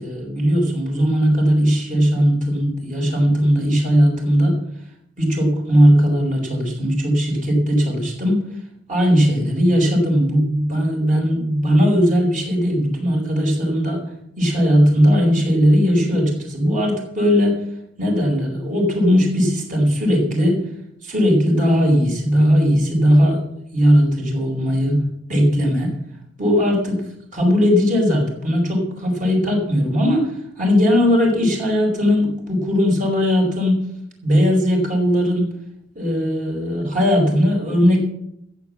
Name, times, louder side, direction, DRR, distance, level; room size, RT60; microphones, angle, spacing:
voice 1, 0.0-4.6 5.2-8.4 8.9-14.0 14.4-17.6 18.0-20.6 21.0-23.4 23.7-25.0 25.3-25.9 26.4-27.0 27.3-30.3 30.6-33.8 34.2-35.5 35.9-38.0, equal, 40° right, 1 dB, 4.9 m, -18 dB
14.0 x 8.1 x 7.2 m, 0.78 s
head